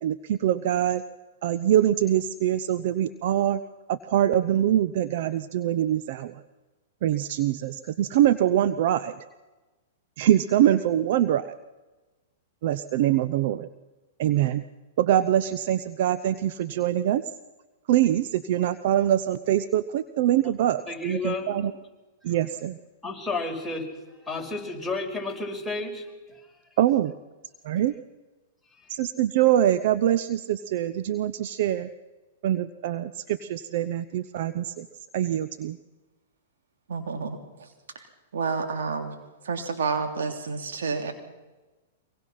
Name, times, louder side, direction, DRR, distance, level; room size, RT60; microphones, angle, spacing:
voice 1, 0.0-1.0 1.4-3.6 3.9-6.4 7.0-9.2 10.2-11.5 12.6-13.7 14.2-14.6 15.0-17.2 17.9-21.7 22.2-22.8 26.8-27.1 27.6-27.9 28.9-31.9 32.4-34.9 35.1-35.8, right 11 dB, 55° right, 14 dB, 0.8 m, -24 dB
voice 2, 20.9-21.7 23.0-23.9 24.3-26.0, left 3 dB, ahead, -3 dB, 5.5 m, -31 dB
voice 3, 36.9-37.7 37.9-38.0 38.3-39.1 39.4-41.1, right 4 dB, 70° right, 4 dB, 3.2 m, -29 dB
24.5 x 22.5 x 5.8 m, 1.2 s
hypercardioid pair, 110°, 0 cm